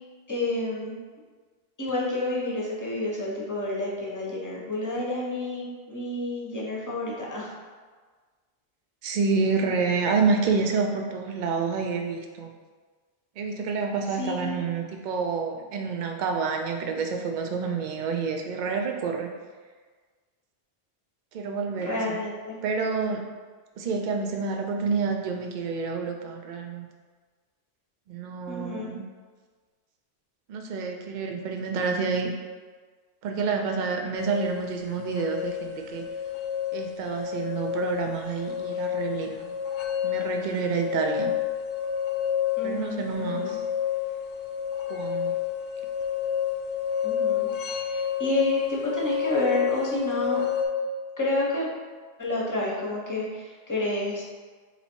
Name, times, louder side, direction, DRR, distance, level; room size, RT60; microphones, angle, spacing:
voice 1, 0.3-1.0 1.8-7.5 14.2-14.7 21.9-22.6 28.5-28.9 42.6-43.6 47.0-50.4 51.2-51.7 52.2-54.2, left 1 dB, 20° left, -4 dB, 0.9 m, -30 dB
voice 2, 9.0-12.5 13.4-19.3 21.3-22.2 22.6-23.2 23.8-26.9 28.1-29.0 30.5-32.3 33.2-36.1 36.7-39.5 40.0-41.3 42.6-43.6 44.9-45.3, right 5 dB, 55° right, 3 dB, 0.6 m, -28 dB
sound 1, 34.1-50.7, left 9 dB, 70° left, 0.8 m, -29 dB
4.0 x 2.8 x 4.4 m, 1.5 s
omnidirectional pair, 1.1 m